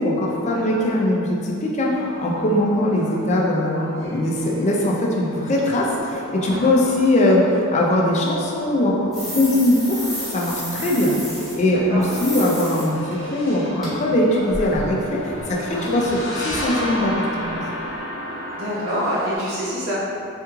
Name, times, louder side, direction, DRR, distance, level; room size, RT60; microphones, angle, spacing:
voice 1, 0.0-7.5 7.7-10.0 10.3-13.0 13.3-17.6, left 1 dB, 30° left, -3 dB, 0.4 m, -21 dB
sound 1, 1.9-19.4, equal, 65° left, 0.7 m, -34 dB
sound 2, 9.1-11.5 12.0-12.9 13.1-13.2 13.8-13.9 14.2-16.2 16.5-16.7 16.9-17.1 17.4-17.5 17.8-18.0, equal, ahead, 0.8 m, -32 dB
voice 2, 15.7-16.1 18.5-20.0, equal, 75° right, -8 dB, 1.0 m, -27 dB
3.4 x 3.0 x 2.3 m, 2.6 s
head